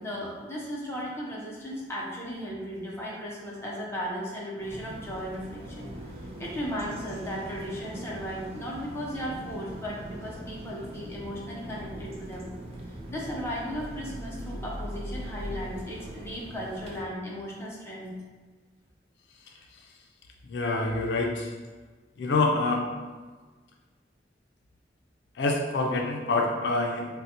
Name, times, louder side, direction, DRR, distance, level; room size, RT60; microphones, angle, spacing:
voice 1, 0.0-12.4 13.1-18.1, equal, 15° left, -5 dB, 0.6 m, -36 dB
sound 1, 4.6-17.0, right 1 dB, 35° right, 0.4 m, -41 dB
voice 2, 20.4-21.5 22.2-22.9 25.4-27.2, left 2 dB, 80° left, 1 dB, 0.4 m, -26 dB
3.7 x 2.1 x 2.8 m, 1.4 s
head